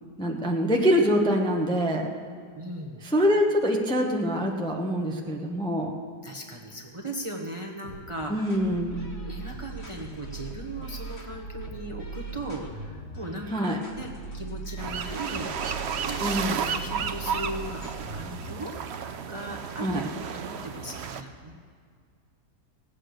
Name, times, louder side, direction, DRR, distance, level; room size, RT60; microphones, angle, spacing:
voice 1, 0.2-2.1 3.1-5.9 8.3-9.2 13.5-13.8 16.2-16.6 19.8-20.1, equal, 5° left, 0 dB, 0.9 m, -25 dB
voice 2, 2.5-3.0 6.2-8.5 9.2-15.7 16.0-16.3 16.6-17.9 18.1-21.8, right 1 dB, 20° right, 1 dB, 1.0 m, -38 dB
sound 1, 7.8-18.7, right 3 dB, 40° left, 2.0 m, -40 dB
sound 2, 14.8-21.2, right 7 dB, 55° right, 0.8 m, -33 dB
17.5 x 8.6 x 6.5 m, 2.1 s
omnidirectional pair, 1.7 m